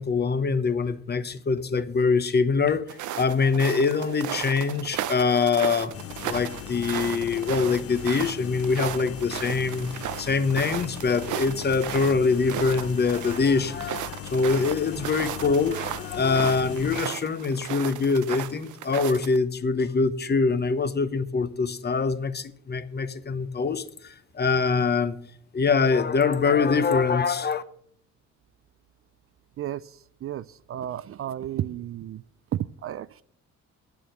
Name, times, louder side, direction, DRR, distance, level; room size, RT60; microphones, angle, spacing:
voice 1, 0.0-5.9 6.2-9.9 10.2-25.2 25.5-27.6, left 4 dB, 35° left, 0.9 m, -24 dB
sound 1, 2.9-19.4, right 11 dB, 75° right, 0.7 m, -36 dB
sound 2, 5.9-17.0, left 12 dB, 50° left, 0.5 m, -39 dB
voice 2, 29.6-32.2 32.5-33.2, right 12 dB, 50° right, 0.4 m, -33 dB
8.8 x 7.1 x 7.7 m
cardioid pair, 90°, 30 cm